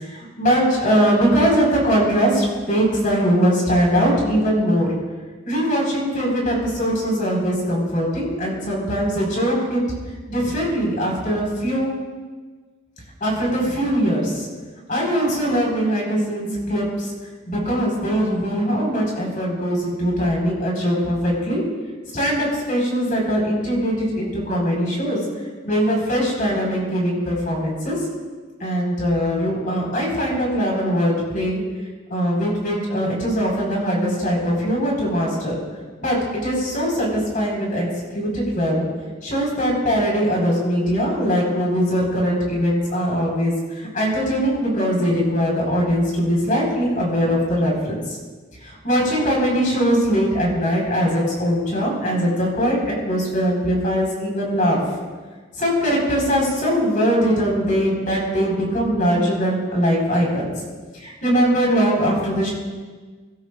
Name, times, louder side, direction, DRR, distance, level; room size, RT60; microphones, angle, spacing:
voice 1, 0.1-4.9 5.4-9.8 10.3-11.9 13.2-14.5 14.9-17.1 17.5-21.6 22.1-25.2 25.6-28.0 28.6-31.6 32.1-35.5 36.0-37.9 38.1-38.9 39.2-48.0 48.8-52.8 53.0-54.8 55.6-60.5 61.0-62.5, equal, 40° left, -2 dB, 5.0 m, -21 dB
24.5 x 13.0 x 2.6 m, 1.4 s
head